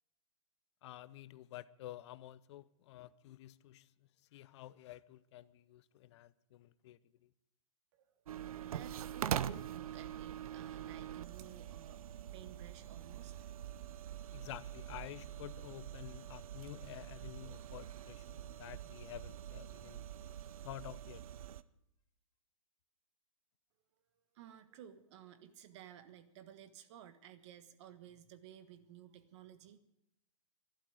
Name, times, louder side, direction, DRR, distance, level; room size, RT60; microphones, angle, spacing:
voice 1, 0.8-3.9 4.3-7.0 14.3-20.1 20.6-21.2, left 14 dB, 50° left, 0.7 m, -50 dB
voice 2, 7.9-12.0 12.3-13.5 24.3-29.8, right 10 dB, 50° right, 1.5 m, -55 dB
sound 1, 8.3-21.6, right 10 dB, 75° right, 0.7 m, -44 dB
12.5 x 12.0 x 9.2 m
hypercardioid pair, 135°, 18 cm